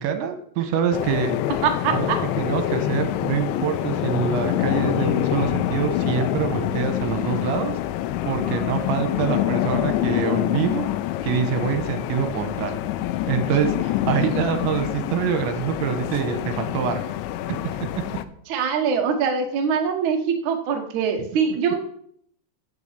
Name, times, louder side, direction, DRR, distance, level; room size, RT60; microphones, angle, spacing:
voice 1, 0.0-1.4 1.9-2.1 2.4-7.7 8.3-10.8 11.2-12.7 13.3-17.0 17.5-17.9, right 8 dB, 80° right, 7 dB, 3.3 m, -25 dB
sound 1, 0.9-18.2, left 13 dB, 85° left, 2.9 m, -26 dB
voice 2, 1.6-2.2 18.5-21.8, right 6 dB, 60° right, 2 dB, 2.2 m, -23 dB
8.3 x 7.2 x 8.3 m, 0.66 s
omnidirectional pair, 5.4 m